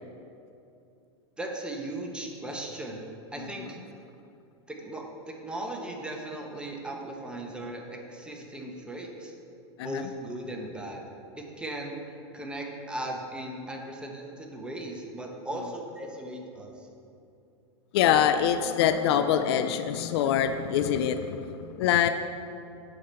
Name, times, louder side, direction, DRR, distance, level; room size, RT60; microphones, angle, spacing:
voice 1, 1.4-3.0 3.3-3.8 4.7-9.3 9.8-11.1 11.4-12.0 12.3-16.9, right 1 dB, 5° right, 0 dB, 1.0 m, -37 dB
voice 2, 3.4-3.7 9.8-10.0 17.9-22.1, left 9 dB, 65° left, 9 dB, 0.4 m, -25 dB
7.7 x 5.0 x 4.3 m, 2.6 s
hypercardioid pair, 110°, 15 cm